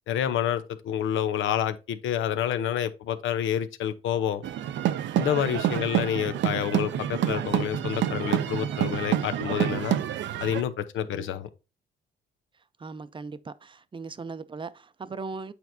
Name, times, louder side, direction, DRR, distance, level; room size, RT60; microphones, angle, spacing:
voice 1, 0.1-4.4 5.2-10.0 10.4-11.5, left 10 dB, 80° left, 0.8 m, -28 dB
sound 1, 4.4-10.6, right 11 dB, 70° right, 0.5 m, -28 dB
voice 2, 5.7-6.0 11.1-11.3 12.8-15.5, right 4 dB, 25° right, 0.6 m, -39 dB
8.4 x 4.5 x 2.6 m
cardioid pair, 90°, 20 cm